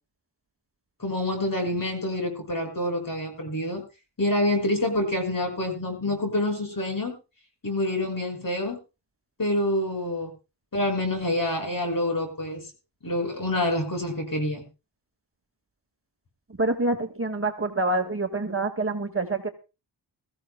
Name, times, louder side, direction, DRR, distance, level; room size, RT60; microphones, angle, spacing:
voice 1, 1.0-3.8 4.2-7.1 7.6-8.8 9.4-10.3 10.7-12.6 13.0-14.6, left 1 dB, 45° left, 4 dB, 6.0 m, -27 dB
voice 2, 16.6-19.5, right 2 dB, 30° right, 5 dB, 1.8 m, -26 dB
22.0 x 15.0 x 2.2 m, 0.30 s
wide cardioid pair, 110°, 44 cm